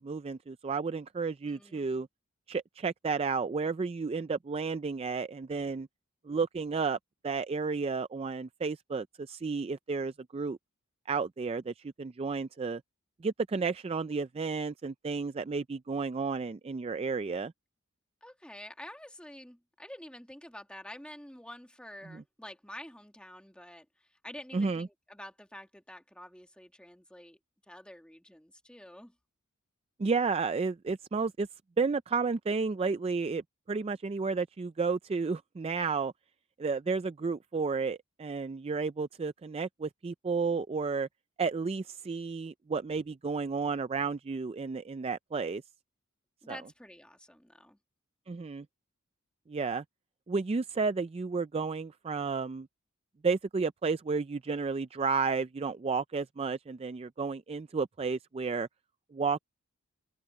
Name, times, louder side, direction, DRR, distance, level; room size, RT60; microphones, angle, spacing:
voice 1, 0.0-2.1 2.5-5.9 6.2-7.0 7.2-10.6 11.1-12.8 13.2-17.5 22.1-22.2 24.5-24.9 30.0-31.5 31.8-33.4 33.7-36.1 36.6-41.1 41.4-45.6 46.5-46.6 48.3-48.7 49.5-49.8 50.3-52.7 53.2-58.7 59.1-59.4, right 4 dB, 25° right, 0.3 m, -32 dB
voice 2, 1.4-2.1 18.2-27.4 27.7-29.1 46.4-47.8, left 1 dB, 5° left, 1.8 m, -48 dB
head